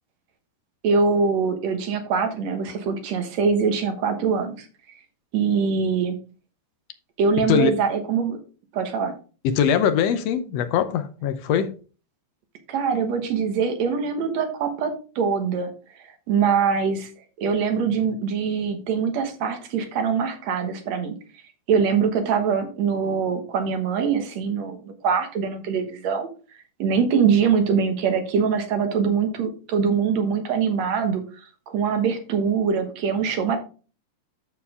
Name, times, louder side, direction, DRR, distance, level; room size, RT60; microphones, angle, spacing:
voice 1, 0.8-4.7 5.3-6.2 7.2-8.4 8.7-9.2 12.7-15.7 16.0-17.1 17.4-21.2 21.7-26.3 26.8-33.6, right 6 dB, 65° right, 2.4 m, -23 dB
voice 2, 7.4-7.8 9.4-11.7, left 8 dB, 70° left, 1.7 m, -22 dB
12.5 x 4.7 x 3.6 m
omnidirectional pair, 3.4 m